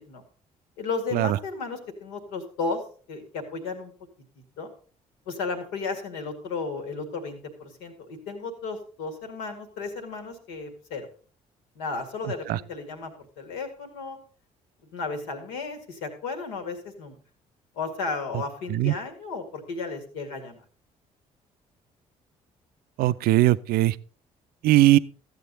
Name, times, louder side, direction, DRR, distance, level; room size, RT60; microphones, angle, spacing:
voice 1, 0.8-2.8 3.1-3.9 4.6-4.7 5.3-11.1 11.8-14.2 14.9-17.2 17.8-20.6, left 4 dB, 65° left, 2.0 m, -34 dB
voice 2, 23.0-24.0 24.6-25.0, right 15 dB, 55° right, 0.5 m, -19 dB
14.0 x 8.2 x 4.0 m
figure-of-eight pair, 45°, 19 cm